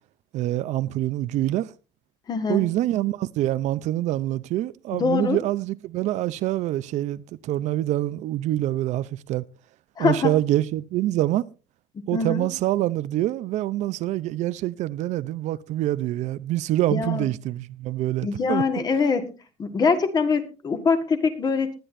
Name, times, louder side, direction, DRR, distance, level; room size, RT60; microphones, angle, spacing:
voice 1, 0.3-1.7 2.5-9.4 10.0-11.5 12.1-18.6, right 14 dB, 65° right, 0.6 m, -25 dB
voice 2, 2.3-2.7 5.0-5.4 10.0-10.3 12.1-12.5 16.9-17.3 18.2-19.3 19.6-21.7, left 4 dB, 30° left, 1.7 m, -23 dB
19.0 x 10.5 x 2.6 m
cardioid pair, 155°, 13 cm